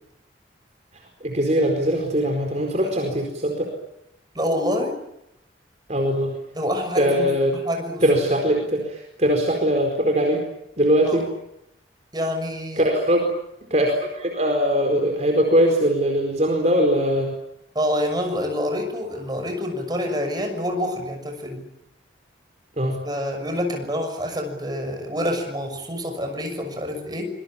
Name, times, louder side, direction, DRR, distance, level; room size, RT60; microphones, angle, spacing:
voice 1, 1.2-3.7 5.9-6.3 7.0-7.5 8.0-10.4 10.8-11.2 12.8-13.3 13.7-17.3 22.8-23.0, equal, 40° right, 2 dB, 4.5 m, -21 dB
voice 2, 4.3-5.0 6.5-8.0 11.1-11.2 12.1-12.9 17.7-21.6 23.0-27.3, equal, 20° right, 4 dB, 6.3 m, -27 dB
26.5 x 22.0 x 8.8 m, 0.82 s
head